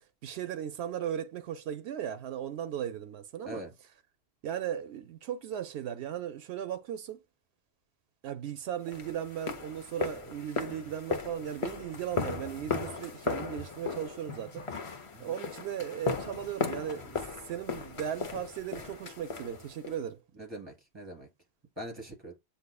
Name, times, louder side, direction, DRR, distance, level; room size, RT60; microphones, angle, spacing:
voice 1, 0.2-3.6 4.4-7.2 8.2-14.7 15.2-17.2 17.5-20.2, right 9 dB, 85° right, 0.9 m, -37 dB
sound 1, 8.9-20.0, left 5 dB, 40° left, 0.6 m, -37 dB
voice 2, 20.4-21.3 21.8-22.3, equal, 25° right, 3.2 m, -42 dB
7.8 x 2.7 x 2.2 m
omnidirectional pair, 1.1 m